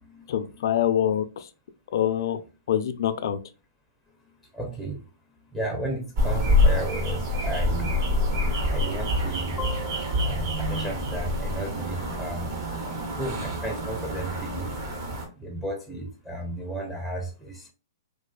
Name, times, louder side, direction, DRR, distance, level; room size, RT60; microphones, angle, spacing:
voice 1, 0.3-1.5 1.9-2.4 2.7-3.4, left 10 dB, 60° left, 11 dB, 0.3 m, -25 dB
voice 2, 4.5-5.0 5.5-8.0 8.7-12.5 13.1-14.7 15.4-17.7, right 1 dB, ahead, 0 dB, 0.5 m, -34 dB
sound 1, 6.2-15.2, left 1 dB, 45° right, 0.9 m, -26 dB
2.4 x 2.3 x 2.3 m, 0.32 s
hypercardioid pair, 130°, 2 cm